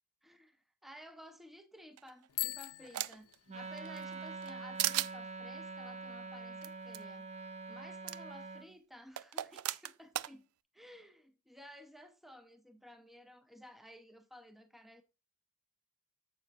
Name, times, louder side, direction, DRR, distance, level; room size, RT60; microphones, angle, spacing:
voice 1, 0.2-7.3 7.7-10.5 10.7-15.0, equal, ahead, 0.7 m, -55 dB
sound 1, 2.0-3.3 3.8-4.5 4.8-5.1 6.6-6.7 6.9-7.0 8.1-8.2 9.2-10.3, right 14 dB, 75° right, 0.4 m, -36 dB
Bicycle bell, 2.3-4.0, left 18 dB, 85° left, 0.5 m, -42 dB
Wind instrument woodwind instrument, 3.5-8.7, right 3 dB, 30° right, 0.9 m, -45 dB
9.1 x 7.1 x 2.6 m
head